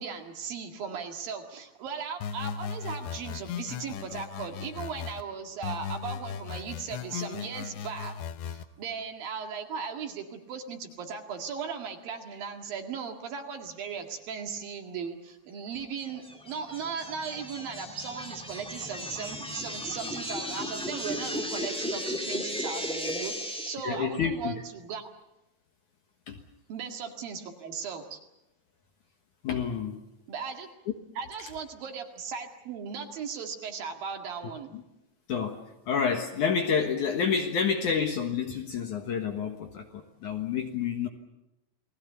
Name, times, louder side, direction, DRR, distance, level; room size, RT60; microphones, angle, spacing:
voice 1, 0.0-8.2 8.5-25.1 26.7-28.2 30.3-30.7 31.2-34.8, right 6 dB, 60° right, 4 dB, 3.6 m, -37 dB
sound 1, 2.2-5.2 5.6-8.6, left 7 dB, 90° left, 3.3 m, -37 dB
sound 2, 16.0-23.7, equal, 5° left, 1.0 m, -35 dB
voice 2, 23.8-24.5 26.3-26.4 29.4-30.0 34.7-34.8 35.3-41.1, left 6 dB, 60° left, 4 dB, 2.3 m, -29 dB
29.5 x 20.5 x 7.0 m, 0.91 s
omnidirectional pair, 4.9 m